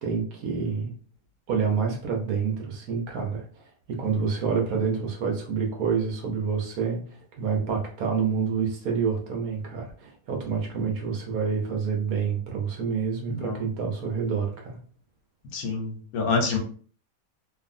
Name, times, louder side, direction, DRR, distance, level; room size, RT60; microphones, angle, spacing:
voice 1, 0.0-0.9 1.5-3.5 3.9-7.0 7.4-14.8, right 6 dB, 80° right, 1 dB, 1.2 m, -27 dB
voice 2, 13.3-13.6 15.5-16.6, left 4 dB, 90° left, 2 dB, 1.3 m, -27 dB
2.9 x 2.6 x 2.6 m, 0.43 s
omnidirectional pair, 1.5 m